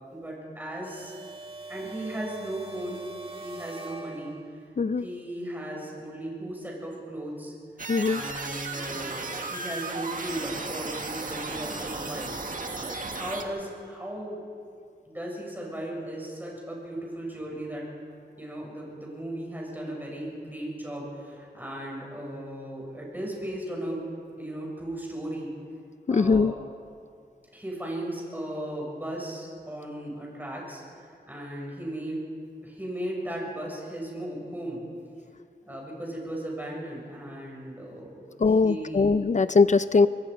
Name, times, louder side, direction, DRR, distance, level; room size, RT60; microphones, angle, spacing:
voice 1, 0.1-1.1 1.7-3.1 3.4-4.4 5.0-7.5 8.1-12.4 13.1-14.4 15.1-17.8 18.4-24.0 24.4-25.5 26.1-26.6 27.5-30.8 31.3-32.2 32.6-34.8 35.7-39.1, right 1 dB, 10° right, -2 dB, 7.2 m, -36 dB
sound 1, 0.8-4.7, right 3 dB, 35° right, 2.0 m, -42 dB
sound 2, 7.8-13.4, right 3 dB, 50° right, 1.8 m, -35 dB
voice 2, 7.9-8.2 26.1-26.5 38.4-40.1, left 4 dB, 45° left, 13 dB, 0.5 m, -21 dB
25.5 x 22.0 x 5.3 m, 2.3 s
wide cardioid pair, 115°, 18 cm